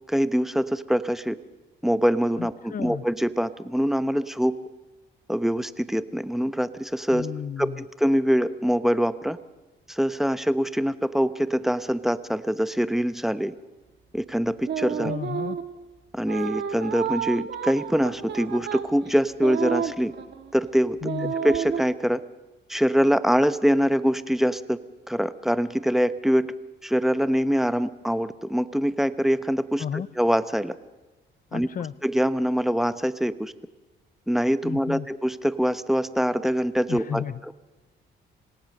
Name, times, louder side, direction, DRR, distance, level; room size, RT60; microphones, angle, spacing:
voice 1, 0.1-1.4 1.8-4.6 5.3-7.3 7.6-9.4 9.9-13.5 14.1-15.1 16.1-20.1 20.5-21.1 21.4-22.2 22.7-24.8 25.1-26.5 26.8-30.7 31.5-31.7 32.0-33.5 34.3-37.5, equal, ahead, 13 dB, 1.0 m, -24 dB
voice 2, 2.4-3.0 7.1-7.8 15.0-15.6 21.0-21.3 29.8-30.1 31.5-31.9 34.6-35.1 36.9-37.4, left 8 dB, 45° left, 19 dB, 0.7 m, -32 dB
sound 1, 14.6-15.7 16.3-20.5 21.0-21.8, right 8 dB, 60° right, 1.7 m, -31 dB
26.5 x 18.5 x 6.6 m, 1.2 s
cardioid pair, 90°, 20 cm